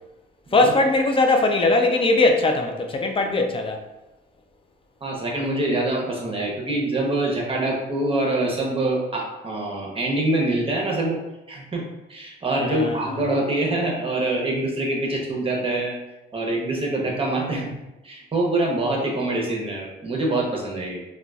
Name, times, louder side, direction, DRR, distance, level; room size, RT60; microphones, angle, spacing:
voice 1, 0.5-3.8 12.6-13.0, left 2 dB, 25° left, 4 dB, 0.5 m, -20 dB
voice 2, 5.0-11.2 11.5-11.8 12.1-16.0 16.3-17.7 18.0-21.0, right 2 dB, 25° right, -1 dB, 0.8 m, -25 dB
3.8 x 2.3 x 2.3 m, 0.99 s
cardioid pair, 90°, 20 cm